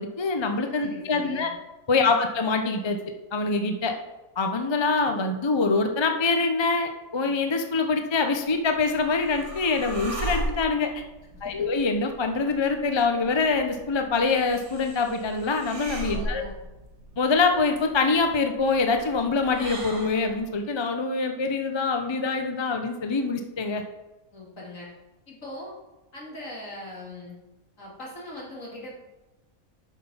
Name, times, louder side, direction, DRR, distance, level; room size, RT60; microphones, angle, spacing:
voice 1, 0.0-1.5 1.9-3.0 3.3-3.9 4.4-10.9 11.4-16.4 17.2-23.8, left 4 dB, 25° left, 5 dB, 0.6 m, -24 dB
voice 2, 0.8-1.5 2.0-2.2 11.3-11.7 16.1-16.5 24.3-24.9 25.3-25.8 26.1-27.4 27.8-29.0, left 1 dB, 65° left, -4 dB, 3.2 m, -40 dB
sound 1, 8.5-20.5, right 2 dB, 80° right, 2.1 m, -38 dB
8.2 x 6.2 x 5.6 m, 1.1 s
omnidirectional pair, 1.5 m